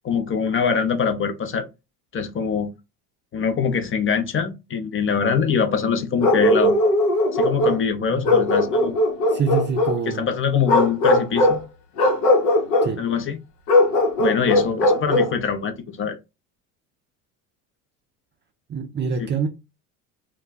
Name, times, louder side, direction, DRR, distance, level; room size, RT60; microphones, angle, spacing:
voice 1, 0.0-1.7 2.1-2.7 3.3-6.8 7.3-8.9 10.1-11.6 13.0-13.4 14.2-16.2 19.2-19.3, left 6 dB, 30° left, 0.6 m, -23 dB
Bark, 6.2-7.8 8.2-10.0 10.6-11.6 12.0-12.9 13.7-15.3, left 1 dB, 80° left, 1.0 m, -19 dB
voice 2, 8.1-8.4 9.3-10.3 12.8-13.0 18.7-19.5, right 6 dB, 25° right, 0.4 m, -25 dB
2.3 x 2.2 x 3.8 m
hypercardioid pair, 80°, 45 cm